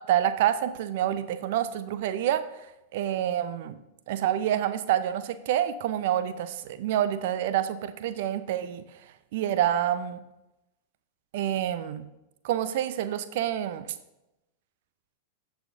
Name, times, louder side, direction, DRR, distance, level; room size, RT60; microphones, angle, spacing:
voice 1, 0.1-2.4 2.9-3.8 4.1-8.8 9.3-10.2 11.3-12.1 12.4-13.9, right 11 dB, 50° right, 12 dB, 0.6 m, -27 dB
17.0 x 5.7 x 2.7 m, 0.94 s
figure-of-eight pair, 90°, 0 cm